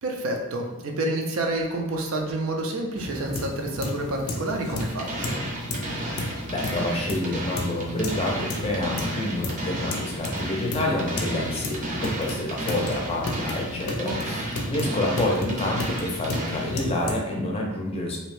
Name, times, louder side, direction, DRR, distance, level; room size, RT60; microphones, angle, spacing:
voice 1, 0.0-5.4 14.0-14.5, right 1 dB, 85° right, 2 dB, 0.5 m, -29 dB
sound 1, 3.0-17.1, left 1 dB, 85° left, 0.5 m, -33 dB
sound 2, 4.8-16.8, right 1 dB, 40° right, 0.6 m, -33 dB
voice 2, 6.5-18.2, left 1 dB, 30° left, -1 dB, 0.5 m, -28 dB
2.7 x 2.1 x 3.1 m, 1.0 s
head